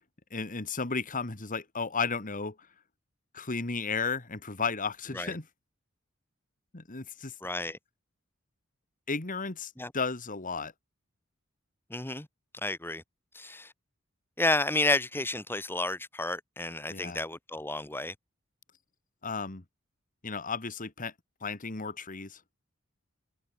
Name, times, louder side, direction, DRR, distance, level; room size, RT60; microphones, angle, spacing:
voice 1, 0.3-2.6 3.3-5.4 6.7-7.3 9.1-10.7 16.9-17.2 19.2-19.6 20.2-21.1 21.4-22.4, left 4 dB, 40° left, 1.9 m, -34 dB
voice 2, 7.4-7.8 9.8-9.9 11.9-12.3 12.6-13.0 13.3-13.7 14.4-18.1, left 2 dB, 10° left, 2.0 m, -31 dB
head